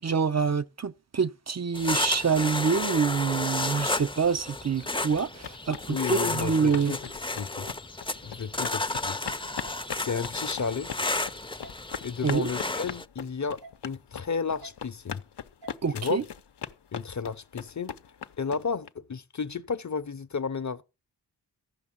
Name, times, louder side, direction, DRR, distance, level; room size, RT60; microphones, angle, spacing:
voice 1, 0.0-6.9 12.2-12.5 15.8-16.2, right 6 dB, 40° right, 0.6 m, -26 dB
sound 1, 1.7-13.1, left 2 dB, 15° left, 0.6 m, -32 dB
sound 2, 5.1-18.9, left 8 dB, 80° left, 0.8 m, -40 dB
voice 2, 5.9-7.7 8.2-9.4 10.0-10.9 12.0-15.2 15.9-16.2 16.9-18.0 18.4-20.8, left 5 dB, 45° left, 0.8 m, -33 dB
sound 3, 7.6-7.7 8.6-8.7 9.6-9.8 10.6-10.7 11.6-11.8 12.6-12.7 13.6-13.8 14.6-14.7 15.6-15.8, right 2 dB, 90° right, 4.9 m, -47 dB
14.5 x 6.0 x 7.3 m
cardioid pair, 55°, 40 cm